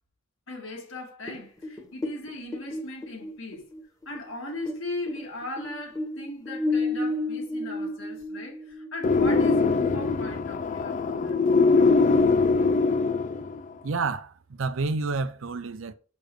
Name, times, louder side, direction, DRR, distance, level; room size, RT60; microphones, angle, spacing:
voice 1, 0.5-3.7 4.1-11.5, left 2 dB, 80° left, 1.9 m, -38 dB
sound 1, 1.3-4.8 5.1-9.2, left 2 dB, 15° left, 1.3 m, -31 dB
sound 2, 9.0-13.7, left 4 dB, 40° left, 0.4 m, -22 dB
voice 2, 13.8-15.9, right 3 dB, 85° right, 0.6 m, -29 dB
6.6 x 5.2 x 3.2 m
head